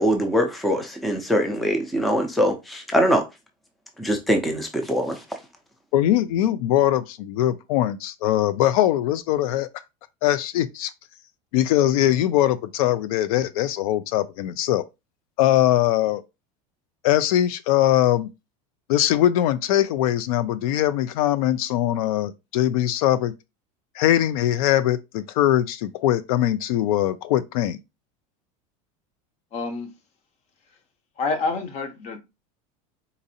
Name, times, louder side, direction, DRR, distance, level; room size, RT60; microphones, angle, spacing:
voice 1, 0.0-3.2 4.0-5.2, equal, ahead, 0.4 m, -22 dB
voice 2, 5.9-9.7 10.2-10.9 11.5-14.8 15.4-16.2 17.0-18.3 18.9-23.3 23.9-27.8, left 13 dB, 85° left, 0.4 m, -21 dB
voice 3, 29.5-29.9 31.2-32.2, left 3 dB, 35° left, 0.8 m, -27 dB
4.0 x 2.6 x 2.7 m
supercardioid pair, 155°, 18 cm